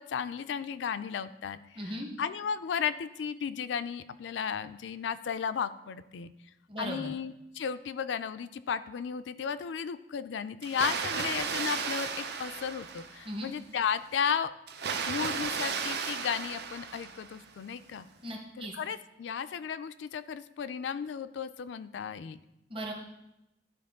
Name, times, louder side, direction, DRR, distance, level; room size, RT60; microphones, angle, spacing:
voice 1, 0.0-6.3 6.8-14.5 15.1-18.1 18.6-22.4, left 7 dB, 75° left, 12 dB, 0.4 m, -34 dB
voice 2, 1.8-2.1 6.7-7.1 13.2-13.5 18.2-18.7 22.7-22.9, right 1 dB, 30° right, 0 dB, 1.0 m, -37 dB
Water, 10.6-13.4 14.7-17.5, right 5 dB, 60° right, 0.6 m, -34 dB
12.0 x 4.5 x 3.6 m, 0.88 s
head